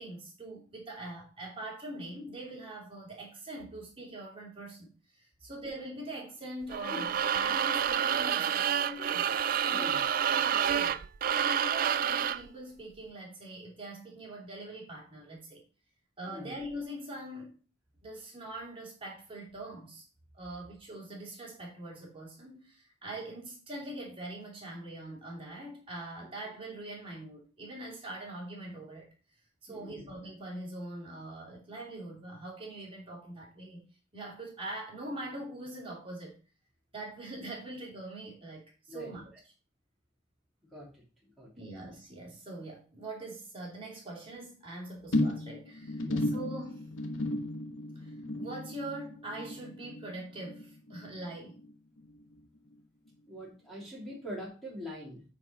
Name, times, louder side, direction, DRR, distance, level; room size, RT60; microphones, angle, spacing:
voice 1, 0.0-9.3 9.6-11.0 11.3-15.6 16.2-17.6 18.0-20.0 20.3-29.1 29.6-33.8 34.1-36.4 36.9-39.3 41.6-46.9 47.9-51.6, right 1 dB, 25° right, -3 dB, 2.8 m, -43 dB
sound 1, 6.7-12.5, right 8 dB, 45° right, 0.3 m, -29 dB
voice 2, 29.7-30.1 38.9-39.1 40.7-41.0 41.4-41.5 46.0-46.2 53.3-55.2, left 1 dB, ahead, -6 dB, 2.8 m, -43 dB
sound 2, 45.1-51.7 52.0-52.4 52.7-52.8, left 1 dB, 80° left, 1.2 m, -35 dB
9.1 x 4.2 x 5.2 m, 0.36 s
head